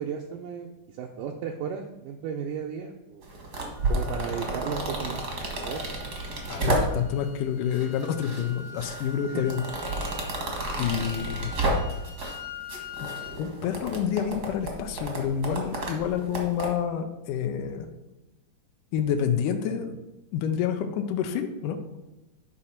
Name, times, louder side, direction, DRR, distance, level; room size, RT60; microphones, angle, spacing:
voice 1, 0.0-3.3 3.9-5.2 5.6-5.8 9.3-9.5, right 7 dB, 80° right, 2 dB, 2.1 m, -34 dB
sound 1, 3.2-7.2 7.7-8.4 8.8-12.4 12.7-16.7, right 2 dB, 45° right, 1.3 m, -31 dB
sound 2, 3.8-13.4, left 4 dB, 55° left, 2.0 m, -44 dB
voice 2, 6.5-9.6 10.8-11.5 13.0-13.1 13.4-17.9 18.9-20.0 20.3-21.8, left 8 dB, 80° left, 6 dB, 2.0 m, -28 dB
10.0 x 4.1 x 5.7 m, 0.98 s
omnidirectional pair, 4.2 m